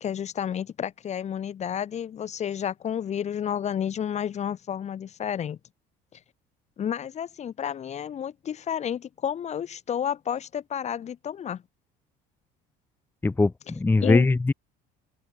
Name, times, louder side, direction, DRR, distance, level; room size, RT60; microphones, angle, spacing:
voice 1, 0.0-5.6 6.8-11.6 14.0-14.3, left 9 dB, 35° left, 1.3 m, -31 dB
voice 2, 13.2-14.5, left 3 dB, 10° left, 0.8 m, -21 dB
open air
cardioid pair, 135°, 20 cm